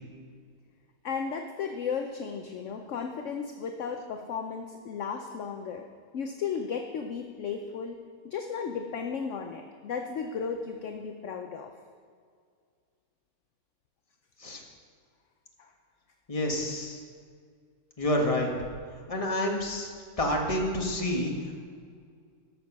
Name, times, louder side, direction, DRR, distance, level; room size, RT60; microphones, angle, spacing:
voice 1, 1.0-5.9 6.1-8.0 8.2-11.7 15.6-15.7, left 6 dB, 60° left, 4 dB, 0.9 m, -34 dB
voice 2, 16.3-17.0 18.0-18.5 19.1-19.9 20.2-21.3, left 1 dB, 25° left, 0 dB, 1.5 m, -28 dB
13.5 x 6.8 x 6.0 m, 2.1 s
omnidirectional pair, 1.6 m